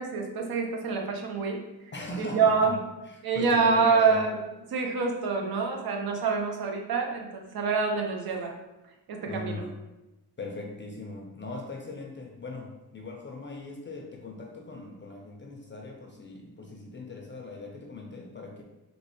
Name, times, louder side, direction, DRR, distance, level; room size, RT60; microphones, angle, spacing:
voice 1, 0.0-1.6 2.2-2.8 3.2-4.4 4.7-8.6 9.1-9.6, right 5 dB, 70° right, 2 dB, 0.7 m, -26 dB
voice 2, 1.9-2.7 3.1-4.2 9.2-9.7 10.4-18.6, left 3 dB, 30° left, 1 dB, 0.4 m, -39 dB
3.0 x 3.0 x 2.9 m, 0.99 s
cardioid pair, 100°, 37 cm